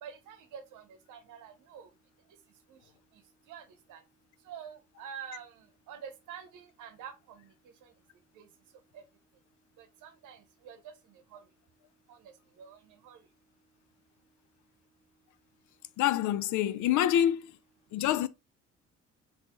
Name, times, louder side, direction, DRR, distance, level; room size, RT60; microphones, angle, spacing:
voice 1, 0.0-1.9 2.7-2.8 3.5-4.0 4.5-7.5 8.4-8.5 8.9-9.0 9.8-10.9 11.3-11.4 12.1-12.2 12.6-13.2, right 8 dB, 90° right, 0.8 m, -47 dB
voice 2, 16.0-17.5 17.9-18.3, left 11 dB, 75° left, 0.4 m, -26 dB
2.9 x 2.7 x 3.6 m
cardioid pair, 90°, 30 cm